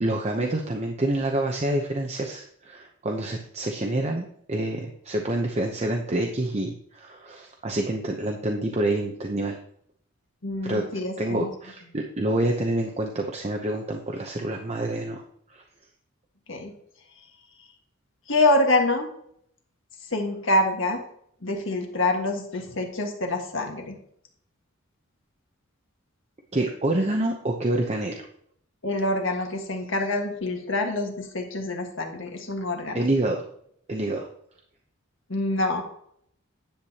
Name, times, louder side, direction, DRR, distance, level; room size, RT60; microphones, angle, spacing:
voice 1, 0.0-9.6 10.6-10.8 11.2-15.2 15.5-15.6 26.5-28.3 32.9-33.4 33.9-34.3, right 1 dB, 30° right, 2 dB, 0.8 m, -27 dB
voice 2, 10.4-11.5 16.5-16.7 18.3-19.1 20.1-21.0 21.4-24.0 28.8-33.1 35.3-35.8, left 2 dB, 65° left, 3 dB, 1.6 m, -26 dB
10.5 x 8.1 x 2.9 m, 0.67 s
head